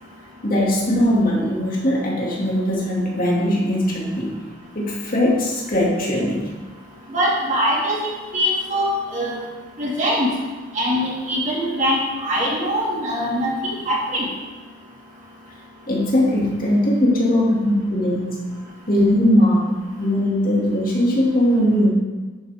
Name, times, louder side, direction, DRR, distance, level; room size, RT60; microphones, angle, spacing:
voice 1, 0.4-4.4 4.7-6.5 15.9-18.4 18.9-19.7 20.0-21.9, left 1 dB, 50° left, -4 dB, 2.6 m, -19 dB
voice 2, 7.1-8.0 8.3-9.4 9.8-10.3 10.7-14.3, equal, 40° right, -4 dB, 2.4 m, -22 dB
10.5 x 8.1 x 3.7 m, 1.3 s
head